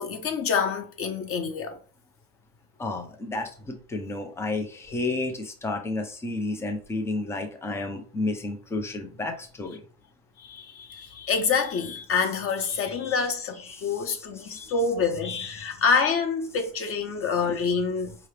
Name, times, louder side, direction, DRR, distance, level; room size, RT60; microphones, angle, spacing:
voice 1, 0.0-1.8 10.4-18.2, left 5 dB, 30° left, 0.7 m, -27 dB
voice 2, 2.8-9.8 14.4-14.7 17.5-17.6, left 2 dB, 5° left, 0.3 m, -31 dB
4.8 x 2.8 x 3.2 m
supercardioid pair, 135°, 45 cm